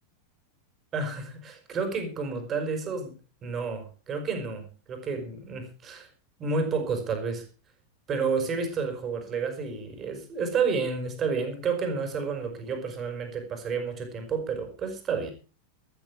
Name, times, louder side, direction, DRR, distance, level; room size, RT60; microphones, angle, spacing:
voice 1, 0.9-3.1 3.4-6.1 6.4-7.5 8.1-15.3, right 5 dB, 25° right, 6 dB, 5.1 m, -30 dB
14.0 x 13.5 x 4.9 m, 0.35 s
figure-of-eight pair, 90°, 0 cm